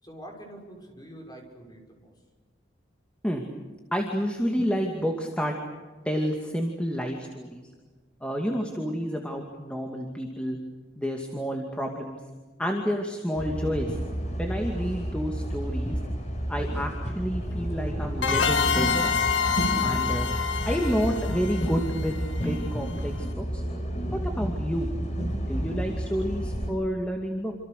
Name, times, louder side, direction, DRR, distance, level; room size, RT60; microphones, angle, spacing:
voice 1, 0.0-2.1, right 1 dB, 20° left, 2 dB, 6.0 m, -45 dB
voice 2, 3.9-5.5 6.0-7.6 8.2-10.6 11.0-12.2 12.6-14.0 14.4-16.0 16.5-19.2 19.8-23.6 24.1-24.9 25.5-27.5, equal, 5° left, 2 dB, 2.4 m, -30 dB
sound 1, 13.4-26.7, equal, 40° left, 5.0 m, -31 dB
Brass instrument, 17.0-22.1, equal, 10° right, 4.6 m, -45 dB
sound 2, 18.2-22.7, left 6 dB, 90° left, 2.1 m, -27 dB
28.0 x 27.0 x 6.7 m, 1.3 s
head